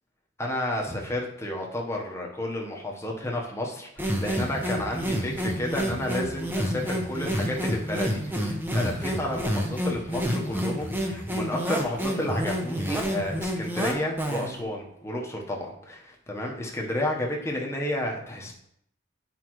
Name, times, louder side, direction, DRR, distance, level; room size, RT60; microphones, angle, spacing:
voice 1, 0.4-18.5, left 1 dB, 15° left, -1 dB, 1.0 m, -31 dB
sound 1, 4.0-14.6, equal, 10° right, 0.8 m, -29 dB
9.5 x 5.0 x 3.1 m, 0.75 s
head